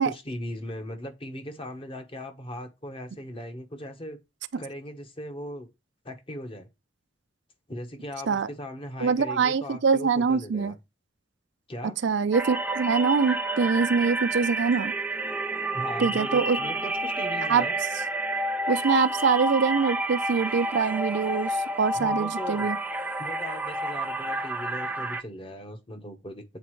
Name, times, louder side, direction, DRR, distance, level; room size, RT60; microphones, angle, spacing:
voice 1, 0.0-4.2 4.6-5.7 6.0-6.7 7.7-10.7 11.7-12.0 15.7-17.8 21.9-22.7 23.2-26.4, equal, 30° left, 1.1 m, -38 dB
voice 2, 9.0-10.7 12.0-14.9 16.0-16.6 17.5-17.6 18.7-22.8, right 5 dB, 65° right, 0.5 m, -24 dB
sound 1, 12.3-25.2, right 2 dB, 10° right, 0.5 m, -29 dB
8.2 x 4.2 x 3.1 m
head